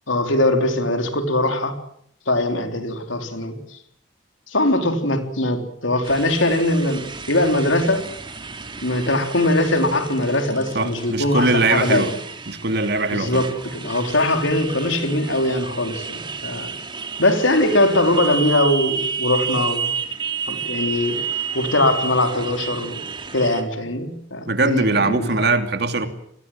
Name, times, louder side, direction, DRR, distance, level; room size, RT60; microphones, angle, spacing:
voice 1, 0.1-1.8 2.3-3.8 4.5-8.1 8.8-12.1 13.1-16.7 17.2-19.9 20.5-21.2 21.5-23.0 23.3-25.3, left 1 dB, 85° left, 4.1 m, -21 dB
Motorcycle, 6.0-23.6, right 6 dB, 25° right, 2.9 m, -31 dB
voice 2, 10.7-12.1 12.5-13.4 24.5-26.1, right 3 dB, 55° right, 2.9 m, -21 dB
29.0 x 20.5 x 7.7 m
head